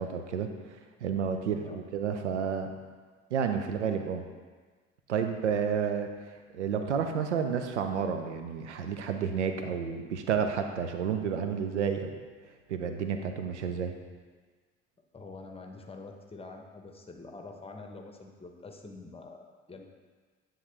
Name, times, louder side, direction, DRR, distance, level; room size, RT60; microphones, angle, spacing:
voice 1, 0.0-2.7 3.3-4.2 5.1-12.1 12.7-14.0, right 7 dB, 90° right, 6 dB, 0.5 m, -31 dB
voice 2, 15.1-19.8, left 3 dB, 15° left, 3 dB, 0.9 m, -46 dB
9.3 x 3.7 x 3.3 m, 1.5 s
hypercardioid pair, 60°, 34 cm